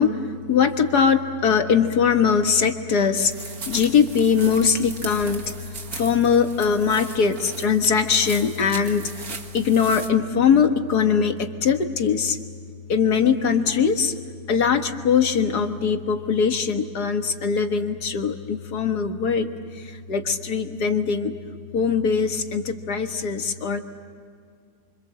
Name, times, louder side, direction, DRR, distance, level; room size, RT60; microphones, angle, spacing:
voice 1, 0.0-9.3 9.5-12.4 12.9-14.1 14.5-21.4 21.7-23.8, left 6 dB, 80° left, 6 dB, 2.0 m, -21 dB
sound 1, 3.2-10.1, right 4 dB, 65° right, 2.2 m, -38 dB
29.0 x 25.5 x 7.6 m, 2.2 s
omnidirectional pair, 1.7 m